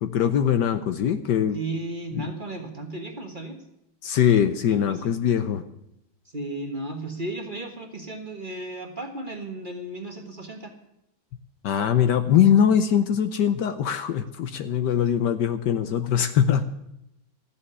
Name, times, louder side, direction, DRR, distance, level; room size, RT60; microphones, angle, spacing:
voice 1, 0.0-1.6 2.2-2.3 4.0-5.6 11.6-16.6, left 9 dB, 65° left, 10 dB, 1.2 m, -22 dB
voice 2, 1.5-3.6 4.7-5.1 6.2-10.7, right 2 dB, 30° right, 3 dB, 1.4 m, -34 dB
14.0 x 7.1 x 9.8 m, 0.81 s
omnidirectional pair, 2.2 m